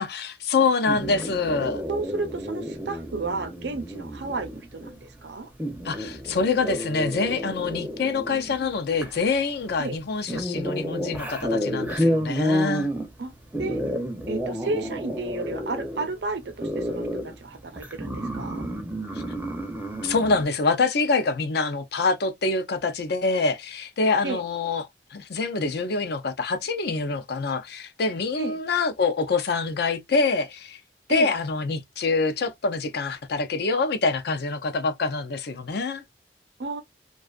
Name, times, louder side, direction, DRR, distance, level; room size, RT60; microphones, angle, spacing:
voice 1, 0.0-1.8 5.8-12.9 19.1-19.2 20.0-30.8 31.1-36.0, left 4 dB, 65° left, 0.5 m, -25 dB
sound 1, 0.9-20.4, equal, 10° right, 0.5 m, -31 dB
voice 2, 1.9-5.5 9.8-10.0 13.2-13.3 13.6-13.8 14.3-18.6 24.2-24.4 28.4-28.6 31.1-31.3 36.6-36.8, right 3 dB, 70° right, 0.6 m, -32 dB
2.4 x 2.3 x 2.3 m
head